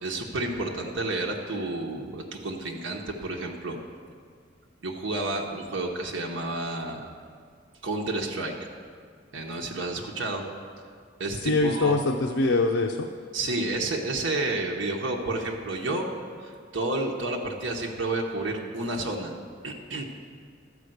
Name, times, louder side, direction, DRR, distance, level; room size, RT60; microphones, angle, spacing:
voice 1, 0.0-3.8 4.8-7.1 7.8-8.5 9.3-10.5 11.2-12.0 13.3-16.1 16.4-19.3 19.6-20.0, right 2 dB, 85° right, 0 dB, 1.1 m, -30 dB
voice 2, 11.4-13.1, left 3 dB, 90° left, 2 dB, 0.6 m, -23 dB
12.5 x 5.0 x 7.8 m, 2.1 s
head